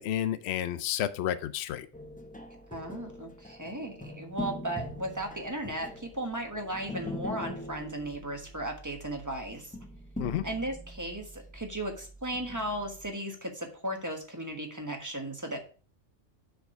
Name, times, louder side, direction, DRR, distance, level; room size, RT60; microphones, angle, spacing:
voice 1, 0.0-1.9 10.2-10.4, left 11 dB, 65° left, 12 dB, 0.8 m, -31 dB
sound 1, 1.9-13.1, left 1 dB, 10° left, 0.4 m, -43 dB
voice 2, 2.7-9.7 10.4-15.6, right 1 dB, 15° right, 3 dB, 1.2 m, -36 dB
6.7 x 4.8 x 4.5 m, 0.38 s
omnidirectional pair, 1.3 m